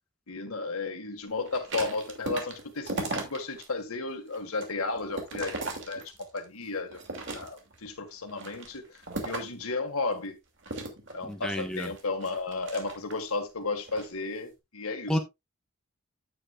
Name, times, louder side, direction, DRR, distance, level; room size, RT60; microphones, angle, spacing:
voice 1, 0.3-6.0 6.3-7.0 7.3-8.9 9.2-10.4 11.1-15.1, left 3 dB, 85° left, 1.8 m, -33 dB
sound 1, 1.4-3.7 4.1-6.4 6.9-7.8 8.3-9.6 10.6-13.3 13.8-14.1, right 2 dB, 55° right, 2.6 m, -37 dB
voice 2, 11.2-11.9 15.1-15.2, equal, 5° left, 1.4 m, -30 dB
9.8 x 8.9 x 2.4 m
head